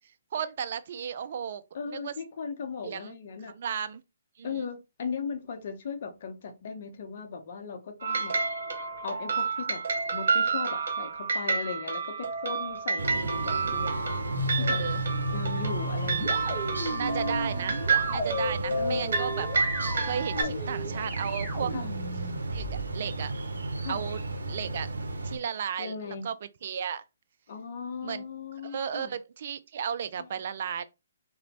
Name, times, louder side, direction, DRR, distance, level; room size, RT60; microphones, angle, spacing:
voice 1, 0.3-1.6 1.9-2.1 2.8-3.2 3.4-4.0 4.4-4.7 14.5-15.0 16.9-17.8 18.1-19.5 20.0-21.7 22.5-22.7 22.9-23.3 23.9-24.9 25.2-26.4 26.6-27.0 28.0-28.2 28.6-30.8, right 7 dB, 55° right, 0.3 m, -34 dB
voice 2, 1.7-3.5 4.4-8.4 9.0-9.8 10.1-14.8 15.3-16.6 16.9-17.4 18.7-19.2 20.3-20.6 21.7-21.9 23.8-24.0 25.8-26.3 27.5-29.1 30.2-30.3, left 5 dB, 50° left, 0.6 m, -38 dB
sound 1, 8.0-20.4, right 4 dB, 70° right, 1.0 m, -30 dB
sound 2, 13.0-25.4, right 2 dB, 90° right, 0.6 m, -34 dB
sound 3, 14.3-22.9, equal, 15° right, 1.4 m, -34 dB
3.0 x 2.1 x 2.7 m
hypercardioid pair, 150°, 0 cm